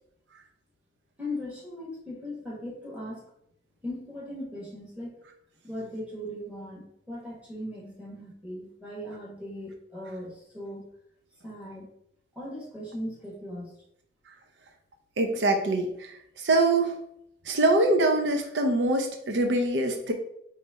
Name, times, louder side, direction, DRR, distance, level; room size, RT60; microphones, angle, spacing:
voice 1, 1.2-3.3 3.8-5.2 5.6-10.9 11.4-11.9 12.3-13.8, left 1 dB, 5° right, -5 dB, 1.3 m, -38 dB
voice 2, 15.2-15.9 16.4-17.0 17.5-20.1, right 2 dB, 80° right, 4 dB, 0.6 m, -23 dB
4.2 x 3.2 x 3.5 m, 0.72 s
head